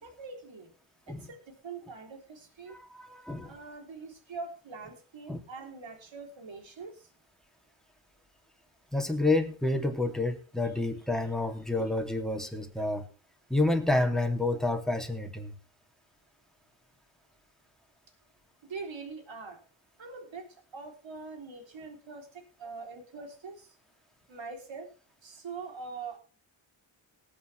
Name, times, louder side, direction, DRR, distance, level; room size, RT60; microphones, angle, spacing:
voice 1, 0.0-0.7 1.1-2.8 3.4-7.1 18.6-19.6 20.0-23.8 24.3-24.9 25.2-26.2, right 4 dB, 65° right, 3 dB, 3.5 m, -43 dB
voice 2, 2.7-3.5 5.3-5.4 8.9-13.0 13.5-15.5, left 2 dB, ahead, 3 dB, 2.6 m, -29 dB
19.0 x 8.6 x 3.3 m, 0.36 s
cardioid pair, 55°, 48 cm